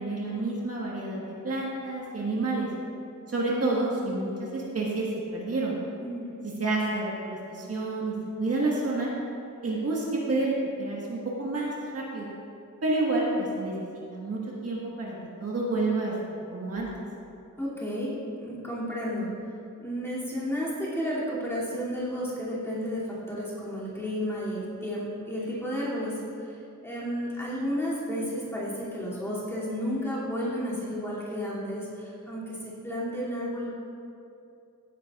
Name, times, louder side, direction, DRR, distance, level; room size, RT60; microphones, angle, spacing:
voice 1, 0.0-2.7 3.3-5.1 5.3-5.7 6.4-9.1 9.6-12.3 12.8-13.7 14.1-15.1 15.4-16.1 16.5-16.9, right 2 dB, 50° right, -4 dB, 1.5 m, -29 dB
voice 2, 17.6-19.3 19.8-26.5 26.8-33.7, equal, 5° left, -9 dB, 2.6 m, -32 dB
15.5 x 9.9 x 2.4 m, 2.6 s
wide cardioid pair, 170°, 32 cm